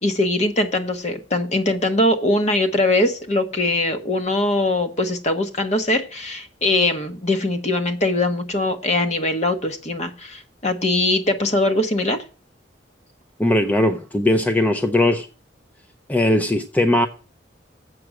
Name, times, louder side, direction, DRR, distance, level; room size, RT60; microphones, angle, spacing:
voice 1, 0.0-12.2, left 2 dB, 40° left, 1.2 m, -21 dB
voice 2, 13.4-15.3 16.1-17.1, left 1 dB, 10° left, 0.5 m, -19 dB
7.8 x 6.1 x 7.6 m
head